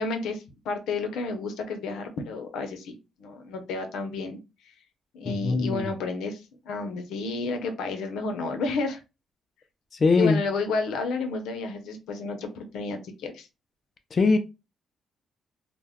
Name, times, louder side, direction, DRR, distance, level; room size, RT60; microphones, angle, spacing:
voice 1, 0.0-4.4 5.1-9.0 10.2-13.5, left 3 dB, 85° left, 0.6 m, -31 dB
voice 2, 5.3-5.9 9.9-10.4 14.1-14.4, left 4 dB, 40° left, 0.3 m, -22 dB
2.2 x 2.0 x 3.4 m
cardioid pair, 90°, 0 cm